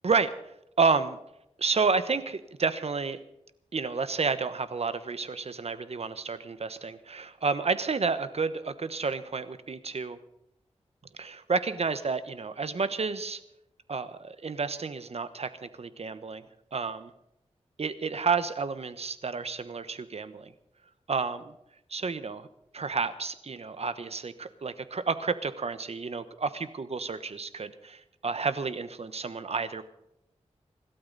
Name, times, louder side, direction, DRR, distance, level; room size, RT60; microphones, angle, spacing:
voice 1, 0.8-1.2 1.6-3.2 3.7-10.2 11.2-13.4 13.9-16.4 16.7-17.1 17.8-20.5 21.1-21.5 21.9-22.5 22.7-29.8, right 4 dB, 65° right, 12 dB, 1.1 m, -30 dB
25.5 x 12.5 x 4.1 m, 0.82 s
wide cardioid pair, 70°, 12 cm